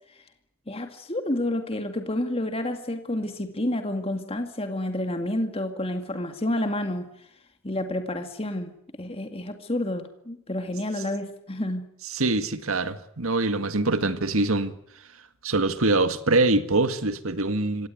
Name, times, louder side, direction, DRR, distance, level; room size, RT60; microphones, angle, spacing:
voice 1, 0.7-7.1 7.6-8.7 9.0-11.8, left 1 dB, 25° left, 2.2 m, -29 dB
voice 2, 12.1-14.8 15.4-17.9, right 2 dB, 70° right, 1.9 m, -24 dB
25.5 x 18.0 x 9.4 m
head